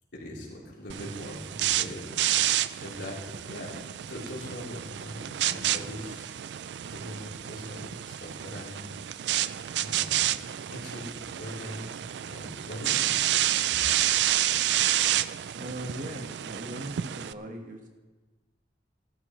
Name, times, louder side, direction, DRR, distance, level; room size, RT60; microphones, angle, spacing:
voice 1, 0.1-3.2 3.5-6.3 6.9-8.9 9.8-11.1 11.4-11.9 12.2-13.2, left 1 dB, 80° left, -5 dB, 3.7 m, -41 dB
sound 1, 0.9-17.3, right 12 dB, 70° right, 0.4 m, -29 dB
voice 2, 15.5-17.9, right 1 dB, 50° right, 2 dB, 1.5 m, -39 dB
17.5 x 13.0 x 3.2 m, 1.2 s
head